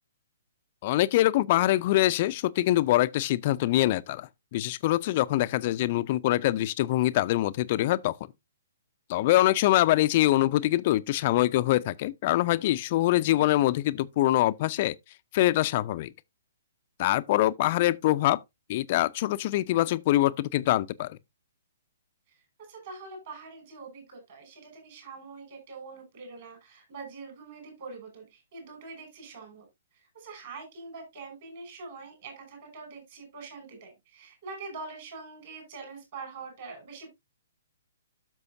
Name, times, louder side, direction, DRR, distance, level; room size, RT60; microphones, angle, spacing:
voice 1, 0.8-8.2 9.1-14.9 15.3-16.1 17.0-18.4 18.7-21.2, left 15 dB, 40° left, 0.4 m, -24 dB
voice 2, 13.1-13.6 22.6-29.7 29.9-37.1, right 4 dB, 45° right, 6.0 m, -44 dB
12.0 x 6.2 x 2.6 m
figure-of-eight pair, 120°, 0 cm